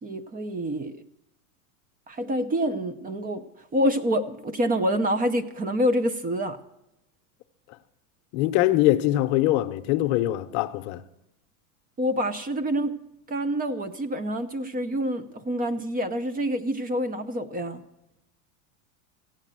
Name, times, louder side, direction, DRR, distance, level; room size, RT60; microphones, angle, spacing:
voice 1, 0.0-1.0 2.1-3.5 3.7-6.6 12.0-13.0 13.3-17.8, equal, 20° right, 0.7 m, -27 dB
voice 2, 8.3-11.0, left 15 dB, 50° left, 0.8 m, -23 dB
15.5 x 9.0 x 7.5 m
supercardioid pair, 120°, 44 cm